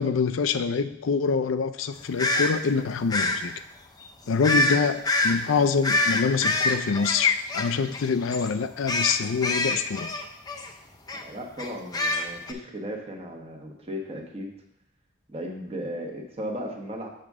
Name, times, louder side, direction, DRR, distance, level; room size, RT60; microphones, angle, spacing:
voice 1, 0.0-3.5 4.3-10.1, left 5 dB, 75° left, 11 dB, 0.4 m, -25 dB
sound 1, 2.2-2.5 3.1-3.4 4.4-4.8 5.0-5.4 5.8-8.1 8.3-8.5 8.9-10.7 11.1-11.2 11.6-12.5, left 2 dB, 20° left, 0.5 m, -25 dB
voice 2, 11.2-14.5 15.3-17.1, equal, 30° right, 1 dB, 1.0 m, -36 dB
7.2 x 6.7 x 3.6 m, 0.77 s
head